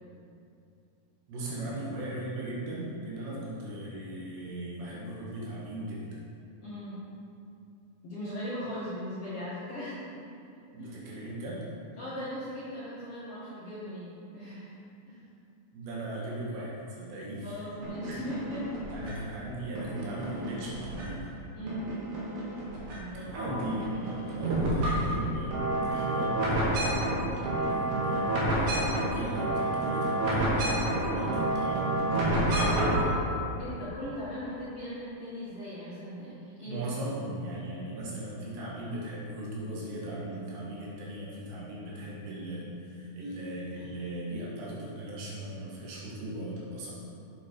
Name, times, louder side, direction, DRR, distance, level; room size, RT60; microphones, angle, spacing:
voice 1, 1.3-6.2 10.7-11.6 15.7-17.7 18.0-18.2 18.9-21.3 23.1-33.1 36.7-46.9, right 1 dB, 75° right, -5 dB, 4.2 m, -38 dB
voice 2, 6.6-7.0 8.0-10.1 10.8-10.9 12.0-14.8 15.1-15.2 17.4-18.6 21.5-21.9 22.9-23.4 33.6-36.8 37.3-37.5 43.8-43.9, equal, 50° left, -10 dB, 1.9 m, -39 dB
sound 1, 17.8-19.3 19.8-21.3 21.7-23.0 23.2-33.2, right 1 dB, 55° right, 3.0 m, -29 dB
9.6 x 8.8 x 4.8 m, 2.6 s
omnidirectional pair, 5.1 m